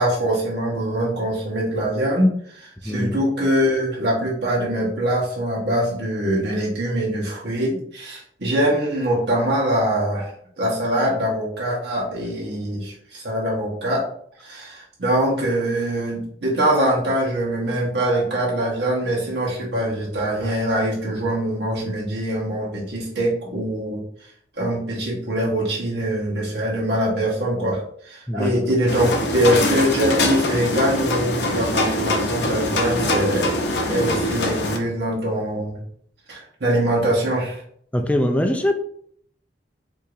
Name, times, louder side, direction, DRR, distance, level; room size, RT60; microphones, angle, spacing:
voice 1, 0.0-14.1 14.4-24.0 24.6-35.8 36.3-37.6, right 1 dB, 70° right, -5 dB, 1.1 m, -23 dB
voice 2, 2.8-3.1 28.3-28.5 37.9-38.8, left 1 dB, 10° left, 5 dB, 0.3 m, -22 dB
sound 1, 28.9-34.8, left 1 dB, 70° left, 0.6 m, -23 dB
4.7 x 2.7 x 2.5 m, 0.64 s
head